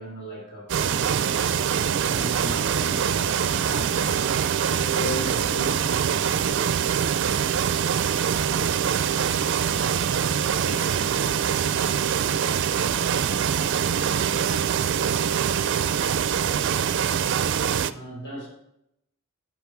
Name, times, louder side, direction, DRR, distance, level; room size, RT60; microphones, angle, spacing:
voice 1, 0.0-1.5 2.0-6.8 17.9-18.5, equal, 50° left, -1 dB, 3.5 m, -36 dB
sound 1, 0.7-17.9, right 8 dB, 55° right, 0.4 m, -24 dB
voice 2, 8.4-13.9 14.5-16.7, left 2 dB, 80° left, 4 dB, 0.7 m, -46 dB
8.2 x 6.1 x 6.1 m, 0.82 s
head